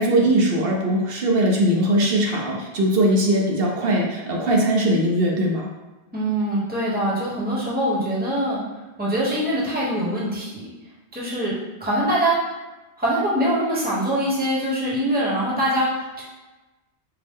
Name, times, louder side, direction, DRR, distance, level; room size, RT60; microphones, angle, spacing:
voice 1, 0.0-5.7, right 1 dB, 60° right, -1 dB, 0.9 m, -20 dB
voice 2, 6.1-8.6 9.0-10.7 11.1-11.5 11.8-12.4 13.0-16.2, right 1 dB, 10° right, -6 dB, 0.9 m, -23 dB
4.5 x 2.0 x 3.6 m, 1.1 s
omnidirectional pair, 1.1 m